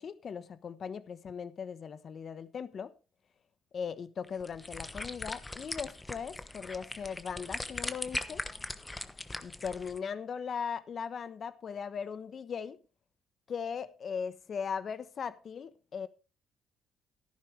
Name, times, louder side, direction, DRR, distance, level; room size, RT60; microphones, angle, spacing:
voice 1, 0.0-2.9 3.7-8.4 9.4-12.8 13.5-16.1, left 6 dB, 50° left, 1.1 m, -38 dB
sound 1, 4.2-10.0, left 2 dB, 20° left, 1.1 m, -40 dB
13.5 x 11.5 x 3.3 m
cardioid pair, 90°, 0 cm